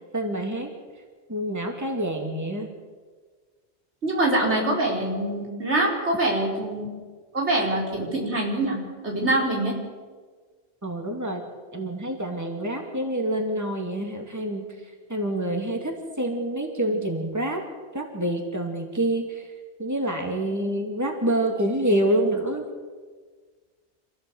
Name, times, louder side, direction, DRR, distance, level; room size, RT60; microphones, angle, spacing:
voice 1, 0.1-0.7 1.3-2.7 10.8-11.4 11.7-14.7 15.1-17.6 17.9-19.5 19.8-22.6, right 1 dB, 15° right, 2 dB, 2.7 m, -27 dB
voice 2, 4.0-6.8 7.3-8.8 9.0-9.8, right 1 dB, 85° right, -2 dB, 5.3 m, -24 dB
26.5 x 16.0 x 8.1 m, 1.5 s
omnidirectional pair, 1.1 m